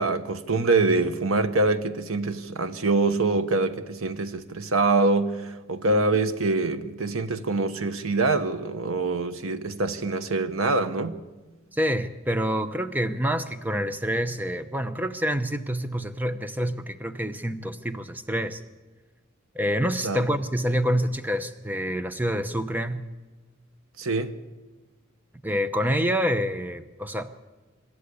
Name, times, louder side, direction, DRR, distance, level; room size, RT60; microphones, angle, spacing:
voice 1, 0.0-11.2 20.0-20.2 24.0-24.3, right 3 dB, 90° right, 1.2 m, -25 dB
voice 2, 11.7-18.6 19.5-23.0 25.4-27.3, equal, 10° right, 0.8 m, -27 dB
25.0 x 13.0 x 8.3 m
head